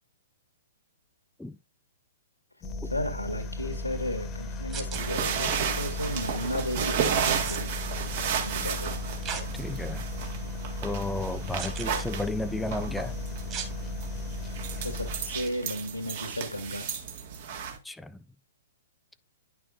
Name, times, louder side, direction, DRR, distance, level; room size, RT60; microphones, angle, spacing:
sound 1, 2.6-15.6, left 2 dB, 20° left, 1.2 m, -36 dB
voice 1, 2.8-7.7 8.4-9.0 14.8-16.9, left 1 dB, 85° left, 1.8 m, -34 dB
sound 2, 4.7-5.0 7.2-7.6 9.2-9.5 10.1-10.2 11.6-12.0 13.5-13.7 15.3-15.5, right 7 dB, 25° right, 2.1 m, -36 dB
sound 3, 4.9-17.8, right 7 dB, 45° right, 1.5 m, -33 dB
voice 2, 9.5-10.1 10.8-13.1 17.8-18.2, left 2 dB, 5° left, 0.3 m, -33 dB
10.0 x 6.2 x 2.5 m
figure-of-eight pair, 115°, 0 cm